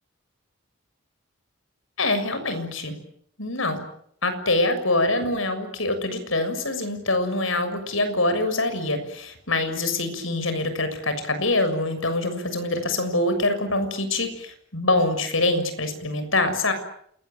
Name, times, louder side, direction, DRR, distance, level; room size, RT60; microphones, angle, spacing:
voice 1, 2.0-2.9 3.4-3.8 4.2-16.7, left 2 dB, 75° left, 9 dB, 6.9 m, -24 dB
28.5 x 21.5 x 9.2 m, 0.68 s
head